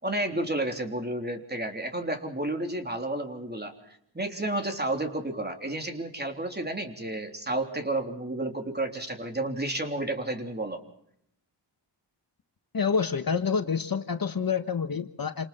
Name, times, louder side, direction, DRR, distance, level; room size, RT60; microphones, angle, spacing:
voice 1, 0.0-10.8, right 1 dB, 20° right, 4 dB, 3.5 m, -31 dB
voice 2, 12.7-15.5, left 6 dB, 50° left, 8 dB, 1.4 m, -27 dB
28.5 x 27.0 x 4.4 m, 0.72 s
wide cardioid pair, 105°, 45 cm